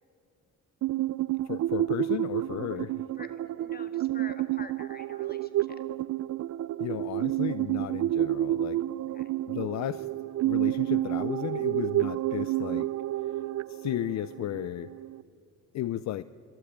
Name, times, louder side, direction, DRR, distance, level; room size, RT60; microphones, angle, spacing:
sound 1, 0.8-15.2, right 14 dB, 60° right, 0.5 m, -30 dB
voice 1, 1.4-3.0 6.8-8.8 9.5-10.1 10.4-12.9 13.2-13.3 13.7-14.9 15.7-16.2, left 13 dB, 65° left, 16 dB, 0.5 m, -34 dB
voice 2, 3.2-5.8 9.1-9.3, left 4 dB, 30° left, 8 dB, 1.9 m, -48 dB
25.5 x 12.5 x 8.8 m, 2.4 s
cardioid pair, 90°, 30 cm